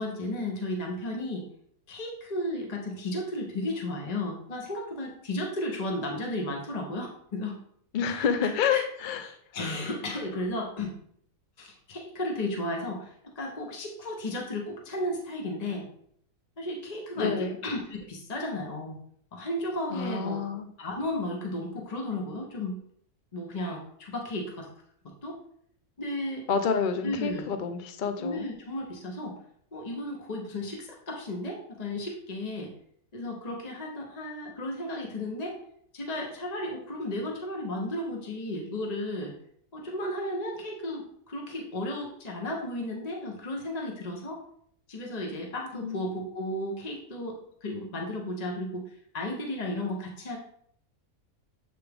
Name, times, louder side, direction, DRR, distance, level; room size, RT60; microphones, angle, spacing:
voice 1, 0.0-1.5 1.9-7.6 8.1-8.9 9.2-10.9 11.6-15.9 16.6-19.0 19.3-20.4 20.8-22.8 23.3-24.7 25.2-25.4 26.0-26.5 27.0-27.5 28.2-29.4 29.7-32.7 33.1-35.6 35.9-39.3 39.7-44.4 44.9-50.4, left 1 dB, 35° left, 0 dB, 0.7 m, -34 dB
voice 2, 7.9-9.2 17.2-17.5 19.9-20.7 26.5-28.5 45.8-46.0, left 6 dB, 70° left, 8 dB, 0.4 m, -28 dB
7.8 x 3.5 x 3.4 m, 0.66 s
omnidirectional pair, 1.6 m